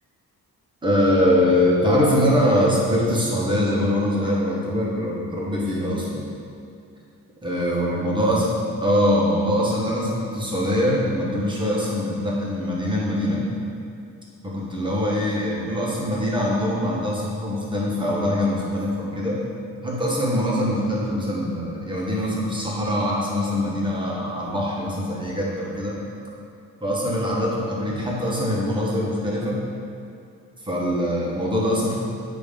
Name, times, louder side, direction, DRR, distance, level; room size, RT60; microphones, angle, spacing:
voice 1, 0.8-6.3 7.4-8.4 8.8-13.4 14.4-19.4 19.8-26.0 26.8-29.6 30.6-31.9, equal, 15° right, -5 dB, 1.3 m, -23 dB
9.0 x 3.1 x 5.1 m, 2.4 s
wide cardioid pair, 140°, 34 cm